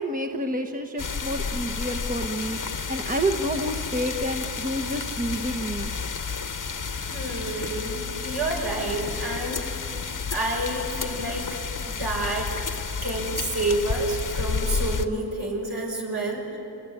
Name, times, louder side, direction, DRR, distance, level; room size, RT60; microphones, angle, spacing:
voice 1, 0.0-5.9, right 1 dB, 20° right, 4 dB, 1.2 m, -29 dB
sound 1, 1.0-15.1, left 5 dB, 50° left, 1.2 m, -31 dB
voice 2, 7.1-9.7 10.0-12.7 13.0-16.6, right 2 dB, 65° right, 0 dB, 6.0 m, -29 dB
27.0 x 20.0 x 9.2 m, 2.8 s
wide cardioid pair, 95°, 41 cm